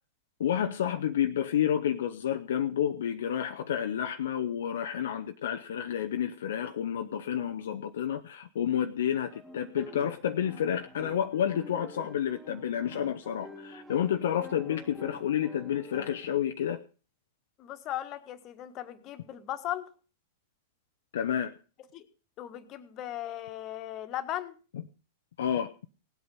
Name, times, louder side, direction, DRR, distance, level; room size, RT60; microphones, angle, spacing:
voice 1, 0.4-16.8 21.1-21.5 25.4-25.7, left 9 dB, 65° left, 6 dB, 0.7 m, -30 dB
sound 1, 9.2-16.3, left 1 dB, 5° right, 2.2 m, -48 dB
voice 2, 17.6-19.9 21.9-22.0 22.4-24.5, left 12 dB, 40° left, 9 dB, 1.5 m, -37 dB
17.5 x 8.2 x 5.4 m, 0.36 s
figure-of-eight pair, 100°, 0 cm